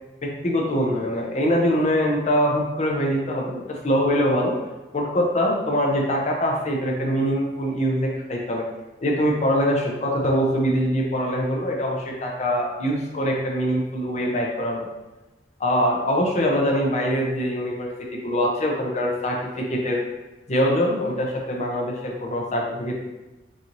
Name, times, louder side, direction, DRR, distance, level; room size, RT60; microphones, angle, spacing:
voice 1, 0.2-4.5 4.9-8.6 9.0-14.9 15.6-20.0 20.5-22.9, equal, 35° left, -1 dB, 0.5 m, -23 dB
3.9 x 3.0 x 2.5 m, 1.1 s
head